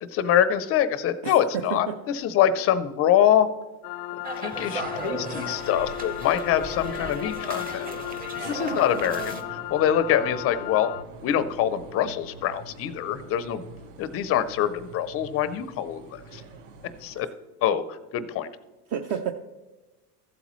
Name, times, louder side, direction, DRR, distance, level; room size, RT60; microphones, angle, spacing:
voice 1, 0.0-3.5 4.1-7.9 8.4-10.9 11.2-13.6 14.0-16.4 17.0-17.3 17.6-18.5, left 10 dB, 30° left, 14 dB, 0.5 m, -24 dB
voice 2, 1.2-1.8 8.4-8.5 18.9-19.3, right 8 dB, 35° right, 7 dB, 0.5 m, -30 dB
sound 1, 3.8-11.0, left 16 dB, 85° left, 0.5 m, -35 dB
sound 2, 4.2-9.4, right 3 dB, 20° right, 0.9 m, -36 dB
sound 3, 4.8-17.2, right 3 dB, 60° right, 1.2 m, -46 dB
14.5 x 8.2 x 3.0 m, 1.2 s
supercardioid pair, 130°, 48 cm